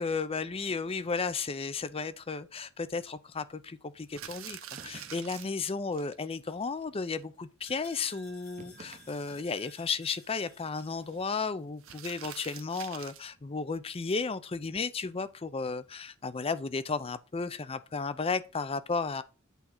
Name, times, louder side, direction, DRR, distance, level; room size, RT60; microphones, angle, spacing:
voice 1, 0.0-19.2, left 4 dB, 25° left, 0.5 m, -34 dB
sound 1, 4.0-6.1 6.5-6.6 6.8-6.9 7.2-7.3 7.7-8.0 10.0-11.2 11.8-13.3, right 10 dB, 65° right, 0.8 m, -46 dB
sound 2, 4.8-5.5 8.6-9.6, right 3 dB, 35° right, 0.6 m, -52 dB
sound 3, 6.5-11.1, left 2 dB, 80° left, 5.1 m, -57 dB
8.2 x 3.8 x 5.8 m
head